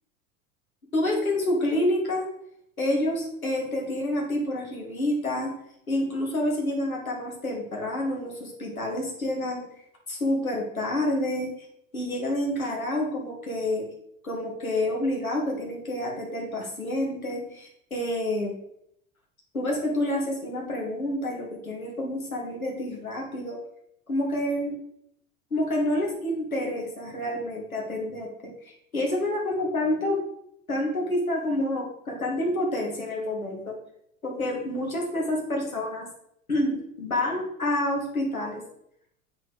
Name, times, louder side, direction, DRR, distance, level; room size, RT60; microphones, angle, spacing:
voice 1, 0.9-2.3 2.8-5.5 5.9-9.6 10.1-11.5 11.9-13.9 14.2-18.6 19.5-23.6 24.1-24.7 25.5-28.5 28.9-30.2 30.7-33.8 34.2-36.1 36.5-38.6, left 1 dB, 80° left, -1 dB, 2.5 m, -28 dB
7.7 x 6.6 x 5.0 m, 0.73 s
figure-of-eight pair, 80°, 41 cm